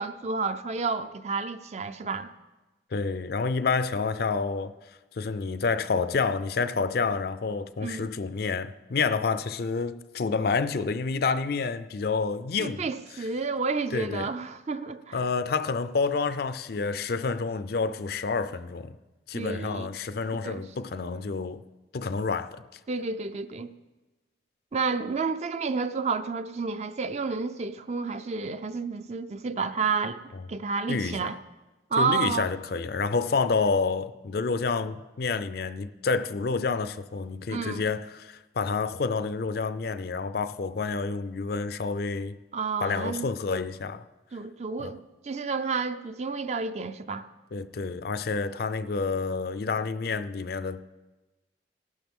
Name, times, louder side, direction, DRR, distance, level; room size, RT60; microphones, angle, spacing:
voice 1, 0.0-2.3 7.8-8.1 12.6-15.2 19.3-19.9 20.4-20.6 22.9-23.7 24.7-30.2 30.5-31.4 31.9-32.5 37.5-37.8 42.5-43.3 44.3-47.3, right 4 dB, 35° right, 0.4 m, -30 dB
voice 2, 2.9-4.7 5.2-12.9 13.9-14.3 15.1-19.0 19.3-21.6 21.9-22.6 30.9-31.3 32.0-42.4 42.8-44.0 44.8-44.9 47.5-50.8, left 4 dB, 55° left, 0.4 m, -29 dB
15.0 x 12.0 x 3.7 m
head